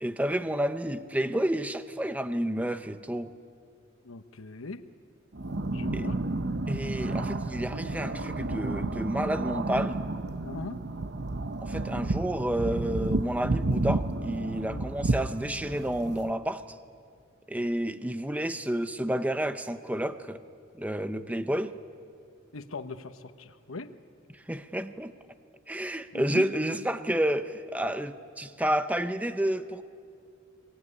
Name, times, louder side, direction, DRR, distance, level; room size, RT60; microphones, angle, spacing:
voice 1, 0.0-3.3 5.9-6.1 6.7-10.0 11.6-16.8 17.5-20.4 20.8-21.8 24.3-25.1 25.7-29.8, right 1 dB, 5° right, 10 dB, 0.8 m, -30 dB
voice 2, 4.0-4.8 5.7-6.2 10.4-10.8 14.6-14.8 22.5-23.9 26.1-26.5, left 3 dB, 90° left, 10 dB, 1.1 m, -40 dB
sound 1, 5.3-16.3, right 2 dB, 55° right, 0.9 m, -31 dB
23.5 x 21.5 x 9.8 m, 2.4 s
head